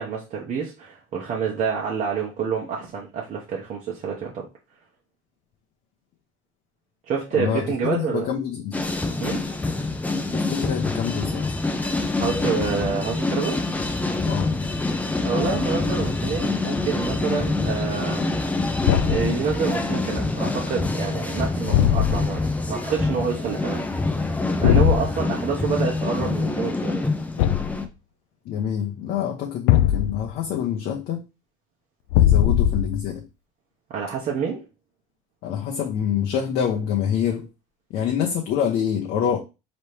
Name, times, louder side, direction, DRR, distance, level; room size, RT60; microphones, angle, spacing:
voice 1, 0.0-4.5 7.1-8.3 9.2-9.5 12.2-13.6 15.2-18.4 19.1-22.4 22.7-23.9 24.6-27.0 33.9-34.7, right 6 dB, 45° right, 1.0 m, -27 dB
voice 2, 7.3-8.7 10.3-11.5 14.3-14.5 28.5-31.2 32.1-33.2 35.4-37.5 37.9-39.4, left 8 dB, 60° left, 0.9 m, -26 dB
sound 1, 8.7-27.9, left 3 dB, 10° left, 0.5 m, -26 dB
Thump thud, 18.8-19.3 21.7-22.4 24.6-25.1 27.4-27.9 29.7-30.3 32.1-33.1, left 12 dB, 85° left, 0.4 m, -19 dB
4.2 x 3.2 x 3.2 m
supercardioid pair, 110°, 17 cm